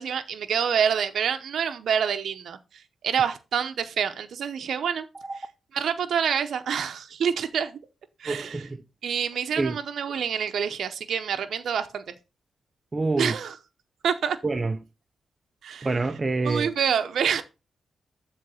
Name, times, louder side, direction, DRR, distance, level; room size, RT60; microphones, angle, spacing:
voice 1, 0.0-2.6 3.0-5.1 5.7-7.8 8.2-8.6 9.0-12.0 13.2-13.5 14.0-14.4 15.6-15.9 16.4-17.4, right 7 dB, 75° right, 0.7 m, -27 dB
voice 2, 5.1-5.5 8.3-8.8 9.6-9.8 12.9-13.3 14.4-14.8 15.8-16.7, right 3 dB, 30° right, 0.5 m, -27 dB
7.5 x 3.2 x 6.1 m
cardioid pair, 80°, 0 cm